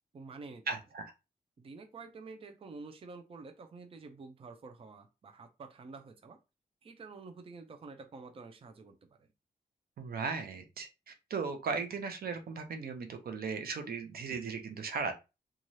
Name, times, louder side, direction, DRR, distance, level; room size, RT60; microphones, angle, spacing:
voice 1, 0.1-0.6 1.6-6.4 6.8-9.3, right 4 dB, 35° right, 5 dB, 0.4 m, -49 dB
voice 2, 0.7-1.1 10.0-15.1, right 5 dB, 80° right, 6 dB, 0.6 m, -37 dB
3.1 x 2.4 x 2.6 m, 0.26 s
wide cardioid pair, 140°, 16 cm